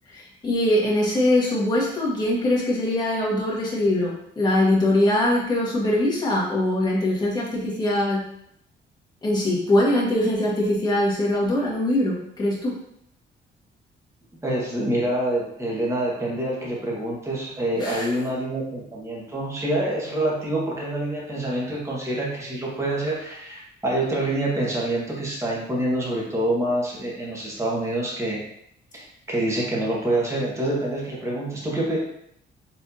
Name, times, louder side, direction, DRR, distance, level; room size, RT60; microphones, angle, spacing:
voice 1, 0.1-8.2 9.2-12.8 17.8-18.1, left 1 dB, 20° left, -5 dB, 1.7 m, -22 dB
voice 2, 14.4-28.4 28.9-32.0, right 1 dB, 15° right, -4 dB, 1.6 m, -26 dB
4.6 x 3.5 x 2.8 m, 0.72 s
cardioid pair, 90°, 20 cm